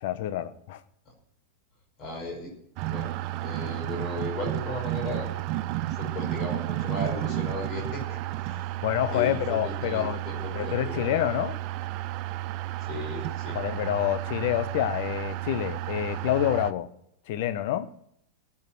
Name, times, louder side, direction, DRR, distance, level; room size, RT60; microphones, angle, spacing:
voice 1, 0.0-0.8 8.8-10.2 10.5-11.6 13.5-16.9 17.3-17.9, left 12 dB, 50° left, 1.0 m, -27 dB
voice 2, 2.0-2.5 2.8-3.1 3.4-5.4 5.9-8.0 8.4-8.6 9.1-11.1 12.8-13.6, left 2 dB, 35° left, 5.7 m, -36 dB
sound 1, 2.8-16.7, right 15 dB, 40° right, 0.5 m, -32 dB
18.5 x 7.4 x 6.3 m
figure-of-eight pair, 90°, 0 cm